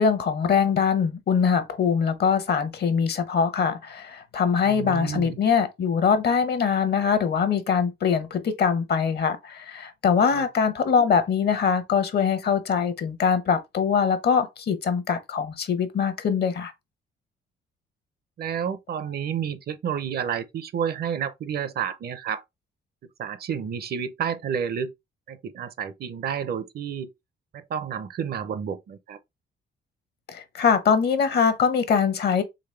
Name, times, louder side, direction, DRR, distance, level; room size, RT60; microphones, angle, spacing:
voice 1, 0.0-16.7 30.3-32.4, left 6 dB, 55° left, 0.9 m, -23 dB
voice 2, 4.7-5.4 10.3-10.4 11.0-11.1 18.4-22.4 23.2-24.9 25.3-27.1 27.5-29.2, right 8 dB, 50° right, 0.6 m, -30 dB
4.0 x 3.1 x 3.2 m
cardioid pair, 90°, 20 cm